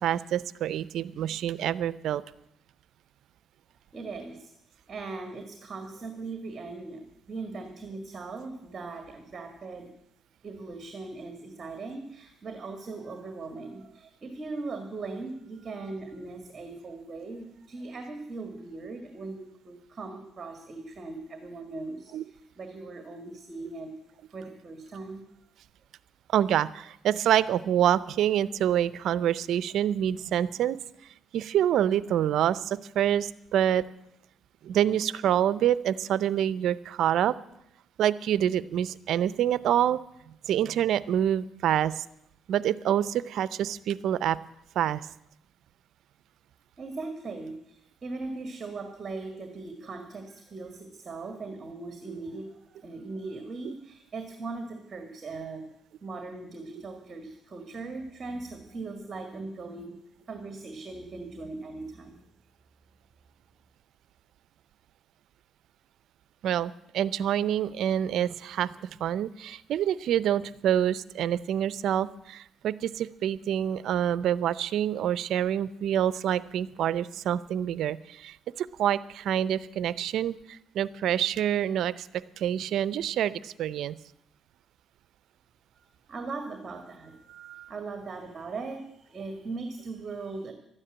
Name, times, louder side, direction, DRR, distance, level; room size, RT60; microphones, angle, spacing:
voice 1, 0.0-2.2 22.1-22.2 26.3-30.8 31.3-33.8 34.6-37.4 38.0-40.0 40.5-42.1 42.5-44.4 44.8-45.0 52.1-52.2 53.6-53.7 66.4-68.7 69.0-82.1 82.4-83.9 87.3-87.7, right 10 dB, 75° right, 18 dB, 0.5 m, -27 dB
voice 2, 3.9-4.5 4.9-9.9 10.4-23.9 24.3-25.2 46.8-55.7 56.0-60.0 60.3-62.2 85.7-87.4 87.7-90.5, right 3 dB, 40° right, 6 dB, 1.8 m, -39 dB
12.5 x 9.8 x 8.8 m, 0.81 s
cardioid pair, 90°, 0 cm